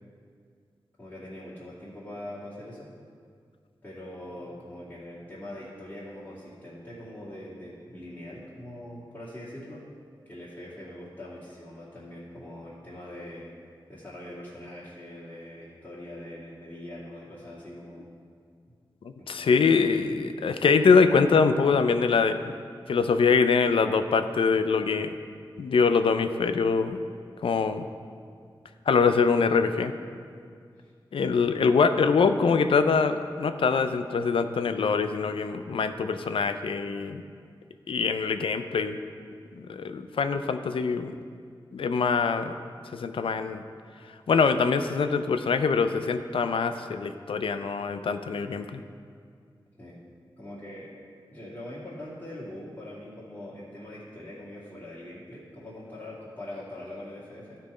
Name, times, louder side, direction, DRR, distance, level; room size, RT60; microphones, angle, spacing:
voice 1, 1.0-2.9 3.8-9.8 10.2-13.5 13.9-18.1 19.2-19.5 30.8-30.9 49.8-50.0 50.4-50.9 51.3-57.6, left 1 dB, 25° left, -11 dB, 2.6 m, -42 dB
voice 2, 19.0-22.5 22.9-25.1 25.6-27.0 27.4-27.9 28.9-29.9 31.1-37.2 37.9-39.0 39.6-41.2 41.7-42.5 42.9-43.6 44.3-48.8, left 5 dB, 90° left, 9 dB, 0.4 m, -24 dB
13.0 x 4.6 x 4.9 m, 2.2 s
wide cardioid pair, 60°, 9 cm